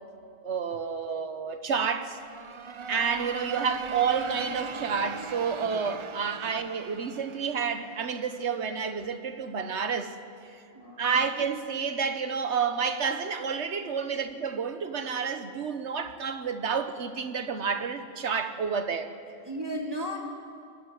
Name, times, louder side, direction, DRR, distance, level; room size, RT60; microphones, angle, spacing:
voice 1, 0.4-2.2 2.9-10.1 11.0-19.1, right 6 dB, 75° right, 1.4 m, -30 dB
sound 1, 2.0-8.7, right 5 dB, 40° right, 0.5 m, -39 dB
voice 2, 10.7-11.1 14.1-14.2 19.4-20.2, equal, 20° right, 2.8 m, -35 dB
24.0 x 13.0 x 9.4 m
omnidirectional pair, 1.2 m